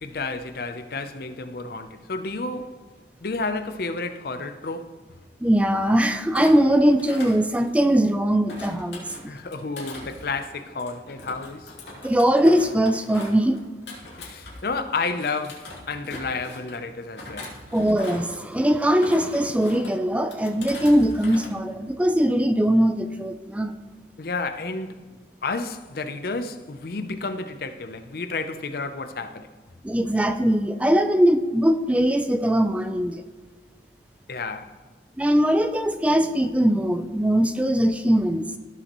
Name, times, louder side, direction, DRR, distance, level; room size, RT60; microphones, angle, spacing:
voice 1, 0.0-2.8 3.2-5.0 9.3-11.7 14.2-17.5 24.2-25.1 25.4-29.5 34.3-34.8, left 3 dB, 55° left, 0.6 m, -31 dB
voice 2, 5.4-9.1 12.0-13.6 17.7-23.7 29.8-33.2 35.2-38.4, equal, 10° right, 0.4 m, -21 dB
Thump thud, 6.3-8.0 8.5-14.8 15.2-16.8 17.2-18.4 18.8-19.9 20.3-21.5 21.8-22.1, left 2 dB, 75° left, 2.8 m, -40 dB
16.0 x 6.6 x 3.1 m
head